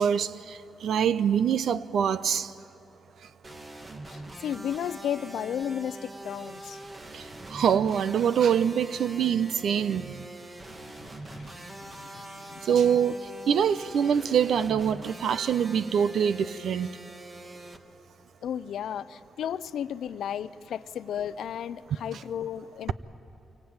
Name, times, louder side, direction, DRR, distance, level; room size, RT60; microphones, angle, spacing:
voice 1, 0.0-2.5 7.1-7.2 7.5-10.1 12.7-13.2 13.5-16.9, right 8 dB, 80° right, 0.8 m, -24 dB
sound 1, 3.4-17.8, right 2 dB, 30° right, 1.8 m, -43 dB
voice 2, 4.1-6.8 10.8-12.7 18.4-22.9, left 9 dB, 85° left, 0.6 m, -34 dB
27.5 x 24.0 x 8.9 m
cardioid pair, 85°, 0 cm